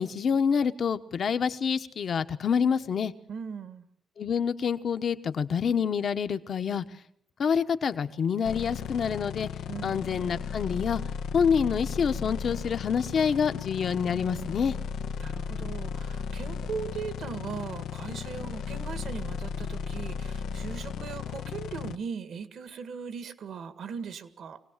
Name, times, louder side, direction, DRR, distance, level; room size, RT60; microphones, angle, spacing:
voice 1, 0.0-3.1 4.2-6.8 7.4-9.5 9.8-11.0 11.3-14.7, left 6 dB, 55° left, 10 dB, 1.2 m, -27 dB
voice 2, 3.3-3.9 9.7-10.1 15.2-24.6, right 6 dB, 70° right, 11 dB, 1.9 m, -39 dB
sound 1, 8.4-22.0, left 6 dB, 90° left, 0.8 m, -35 dB
24.0 x 17.5 x 7.4 m, 0.72 s
cardioid pair, 115°, 0 cm